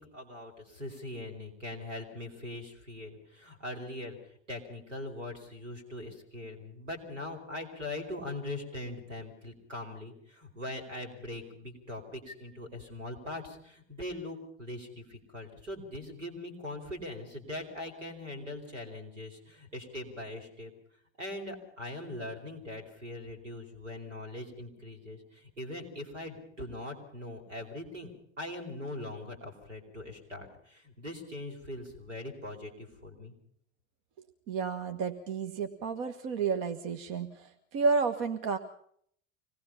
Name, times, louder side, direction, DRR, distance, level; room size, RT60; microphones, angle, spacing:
voice 1, 0.0-4.2 4.5-20.7 21.2-28.1 28.4-33.3, left 1 dB, 85° right, 3 dB, 4.6 m, -41 dB
voice 2, 34.5-38.6, right 5 dB, 55° right, 7 dB, 1.5 m, -31 dB
25.5 x 19.5 x 5.7 m, 0.65 s
figure-of-eight pair, 70°, 36 cm